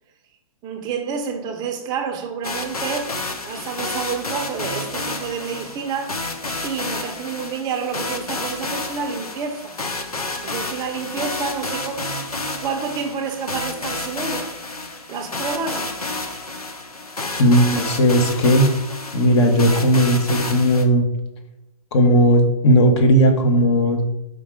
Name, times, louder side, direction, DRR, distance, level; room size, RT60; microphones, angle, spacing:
voice 1, 0.6-3.1 3.4-6.2 6.6-9.7 10.4-12.1 12.6-14.5 15.1-16.0, right 6 dB, 20° right, 0.6 m, -29 dB
sound 1, 2.4-20.8, left 2 dB, 90° left, 0.9 m, -30 dB
voice 2, 17.4-18.7 19.1-21.1 21.9-24.0, equal, 50° left, 1.2 m, -16 dB
5.3 x 3.9 x 4.8 m
figure-of-eight pair, 125°, 18 cm